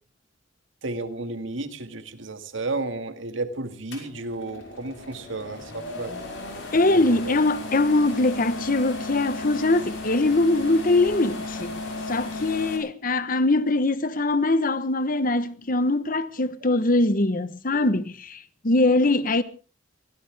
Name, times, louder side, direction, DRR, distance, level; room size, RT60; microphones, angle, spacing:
voice 1, 0.8-6.1 6.9-7.3, right 2 dB, 75° right, 2.0 m, -32 dB
sound 1, 3.9-12.8, left 2 dB, 70° left, 5.5 m, -35 dB
voice 2, 6.7-11.8 12.1-19.4, left 2 dB, 45° left, 1.1 m, -22 dB
23.0 x 17.5 x 3.5 m
head